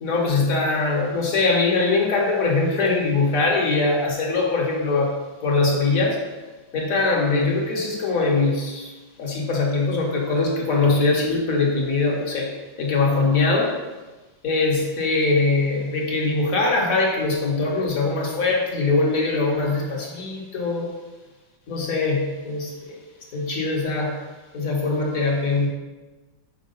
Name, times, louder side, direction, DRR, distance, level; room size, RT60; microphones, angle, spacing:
voice 1, 0.0-5.2 5.4-6.2 6.7-8.9 9.2-13.8 14.4-20.9 21.7-23.0 23.3-24.2 24.5-25.7, left 3 dB, 50° left, -1 dB, 1.4 m, -22 dB
7.4 x 4.6 x 3.9 m, 1.2 s
omnidirectional pair, 2.2 m